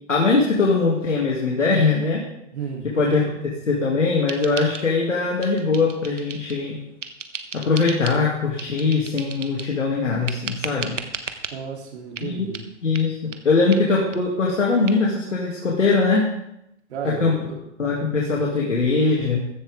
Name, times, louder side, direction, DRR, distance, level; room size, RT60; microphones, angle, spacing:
voice 1, 0.1-2.2 2.9-3.4 3.7-6.8 7.5-10.9 12.2-12.5 12.8-13.1 13.4-16.3 17.0-17.3 17.8-19.5, left 4 dB, 90° left, -4 dB, 2.8 m, -21 dB
voice 2, 2.5-3.0 11.5-12.7 16.9-17.6, right 6 dB, 65° right, 1 dB, 3.3 m, -33 dB
sound 1, 4.3-5.1 5.4-6.6 7.0-8.2 8.6-9.8 10.3-11.5 12.2-12.3 12.5-12.7 12.9-13.1 13.3-13.4 13.7-13.8 14.1-14.2 14.5-14.6 14.9-15.0, right 6 dB, 85° right, 1.4 m, -35 dB
15.0 x 10.5 x 3.7 m, 0.81 s
hypercardioid pair, 125°, 36 cm